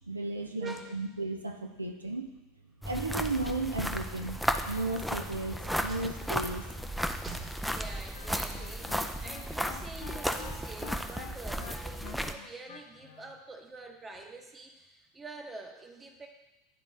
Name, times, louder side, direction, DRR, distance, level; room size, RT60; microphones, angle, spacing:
voice 1, 0.1-2.3 2.8-6.7, right 2 dB, 85° right, 4 dB, 0.4 m, -34 dB
voice 2, 0.6-0.9 5.9-6.1 7.1-16.3, right 3 dB, 20° right, 3 dB, 0.9 m, -46 dB
sound 1, 2.8-12.3, equal, ahead, 0.4 m, -34 dB
Wind instrument woodwind instrument, 7.8-13.4, left 10 dB, 65° left, 0.5 m, -48 dB
10.0 x 3.7 x 3.2 m, 1.0 s
figure-of-eight pair, 80°, 0 cm